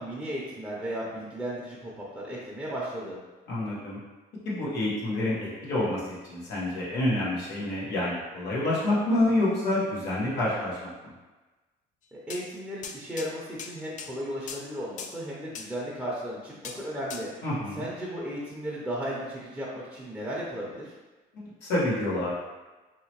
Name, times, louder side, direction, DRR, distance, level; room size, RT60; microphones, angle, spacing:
voice 1, 0.0-3.2 12.1-17.4 17.8-20.9, equal, 5° right, -6 dB, 0.6 m, -35 dB
voice 2, 3.5-4.0 4.4-11.1 17.4-17.8 21.3-22.3, left 1 dB, 85° left, -6 dB, 1.3 m, -28 dB
sound 1, 12.3-12.5 12.8-13.3 13.6-14.1 14.5-14.6 15.0-15.1 15.5-15.7 16.6-16.8 17.1-17.2, left 6 dB, 50° left, 0.4 m, -39 dB
3.1 x 2.9 x 2.9 m, 1.2 s
cardioid pair, 110°, 17 cm